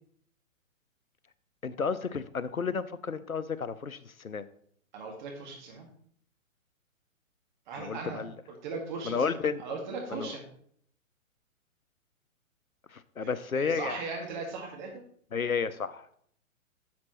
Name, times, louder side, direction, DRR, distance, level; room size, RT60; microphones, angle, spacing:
voice 1, 1.6-4.4 7.8-8.3 9.1-9.6 10.1-10.3 12.9-14.0 15.3-16.1, left 5 dB, 85° left, 15 dB, 0.7 m, -32 dB
voice 2, 4.9-5.9 7.7-8.2 8.6-10.4 13.2-15.0, right 3 dB, 35° right, 0 dB, 1.8 m, -38 dB
10.5 x 7.1 x 3.0 m, 0.63 s
figure-of-eight pair, 125°, 41 cm